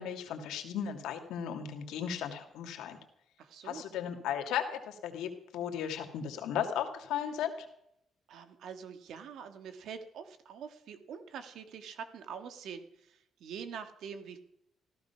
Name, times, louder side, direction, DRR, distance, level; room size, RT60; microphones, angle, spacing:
voice 1, 0.0-3.0 3.6-7.7, left 8 dB, 90° left, 6 dB, 2.0 m, -36 dB
voice 2, 3.4-3.8 8.3-14.4, right 7 dB, 75° right, 8 dB, 1.8 m, -45 dB
14.5 x 14.0 x 5.8 m, 0.75 s
cardioid pair, 90°, 0 cm